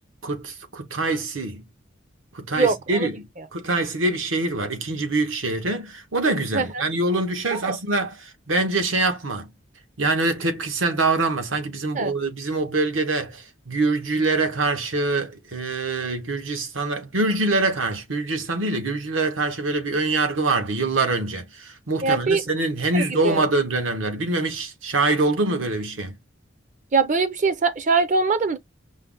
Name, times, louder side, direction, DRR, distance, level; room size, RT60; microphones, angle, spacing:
voice 1, 0.2-1.6 2.3-9.5 10.0-26.1, right 2 dB, 80° right, 1.1 m, -24 dB
voice 2, 2.6-3.1 3.4-3.5 6.5-6.8 7.5-7.8 11.9-12.1 22.0-22.4 22.9-23.4 26.9-28.6, right 4 dB, 40° right, 0.5 m, -22 dB
5.4 x 2.1 x 3.7 m
head